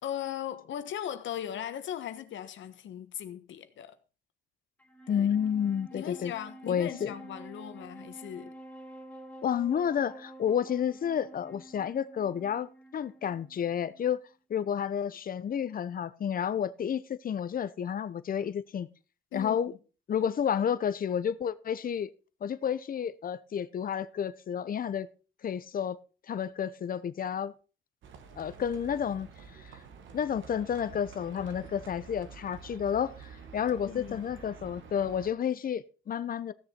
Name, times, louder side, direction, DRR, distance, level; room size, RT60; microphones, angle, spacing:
voice 1, 0.0-3.9 5.1-5.3 5.9-8.5 19.3-19.8 33.7-34.3, left 10 dB, 70° left, 1.3 m, -38 dB
Wind instrument woodwind instrument, 4.8-14.3, right 1 dB, 5° left, 2.1 m, -49 dB
voice 2, 5.1-6.3 6.7-7.1 9.4-14.2 14.5-18.9 19.3-19.7 20.1-22.1 22.4-25.1 25.4-26.0 26.3-27.5 28.4-29.3 30.1-36.5, left 8 dB, 45° left, 0.8 m, -31 dB
Livestock farm animals working animals, 28.0-35.3, right 6 dB, 75° right, 2.0 m, -49 dB
15.5 x 6.9 x 4.4 m
cardioid pair, 90°, 20 cm